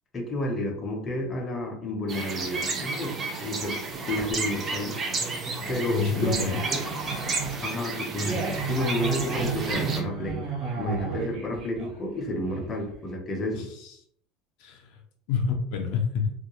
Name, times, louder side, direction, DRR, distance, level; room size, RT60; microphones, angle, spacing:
voice 1, 0.1-3.2 3.4-3.8 4.0-5.0 5.7-6.3 6.7-6.8 7.4-8.4 8.7-10.5 10.8-13.7, left 1 dB, 25° left, 0 dB, 0.5 m, -31 dB
sound 1, 2.1-10.0, right 3 dB, 30° right, 0.4 m, -32 dB
sound 2, 3.9-12.9, right 4 dB, 45° right, 0.8 m, -33 dB
voice 2, 5.9-6.6 13.5-13.9 14.6-14.9 15.3-16.3, left 6 dB, 70° left, 2 dB, 0.5 m, -28 dB
2.3 x 2.0 x 2.9 m, 0.66 s
supercardioid pair, 140°, 0 cm